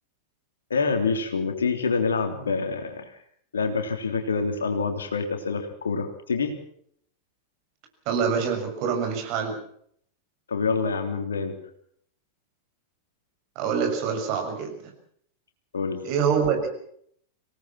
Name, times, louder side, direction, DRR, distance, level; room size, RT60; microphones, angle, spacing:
voice 1, 0.7-3.2 3.5-6.5 10.5-11.5 15.7-16.0, left 4 dB, 70° left, 6 dB, 3.5 m, -26 dB
voice 2, 8.0-9.6 13.5-14.9 16.0-16.7, right 6 dB, 45° right, 4 dB, 6.8 m, -25 dB
26.0 x 18.5 x 6.1 m, 0.66 s
figure-of-eight pair, 90°, 0 cm